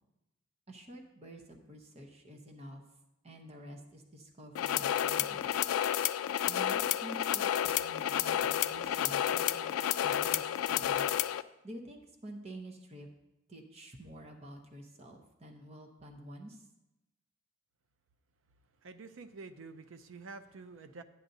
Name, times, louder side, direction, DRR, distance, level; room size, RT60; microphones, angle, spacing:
voice 1, 0.7-2.8 3.2-5.6 6.5-11.1 11.6-13.1 13.5-16.6, right 1 dB, 30° right, 3 dB, 0.8 m, -49 dB
sound 1, 4.6-11.4, left 10 dB, 80° left, 0.3 m, -31 dB
voice 2, 18.8-21.0, right 4 dB, 65° right, 9 dB, 0.5 m, -48 dB
11.5 x 8.9 x 2.7 m, 0.94 s
head